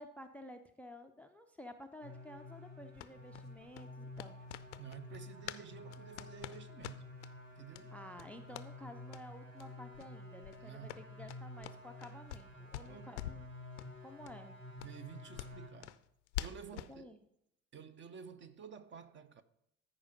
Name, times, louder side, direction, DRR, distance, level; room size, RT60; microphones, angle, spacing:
voice 1, 0.0-4.4 7.9-13.5 14.0-14.5 16.7-17.2, left 1 dB, 5° left, 0.5 m, -52 dB
sound 1, 2.0-15.7, left 1 dB, 80° right, 1.5 m, -51 dB
sound 2, 2.9-5.6 5.9-7.3 7.7-7.8 8.1-8.7 9.1-9.2 9.6-9.7 9.9-10.1 10.4-12.5 12.7-13.5 13.8-13.9 14.2-14.3 14.8-16.9, left 13 dB, 65° left, 0.6 m, -46 dB
voice 2, 4.8-7.1 7.6-7.9 10.6-11.1 12.9-13.1 14.8-16.0 16.4-17.2 17.7-19.4, right 7 dB, 30° right, 0.8 m, -51 dB
13.5 x 5.0 x 5.1 m
figure-of-eight pair, 65°, 38 cm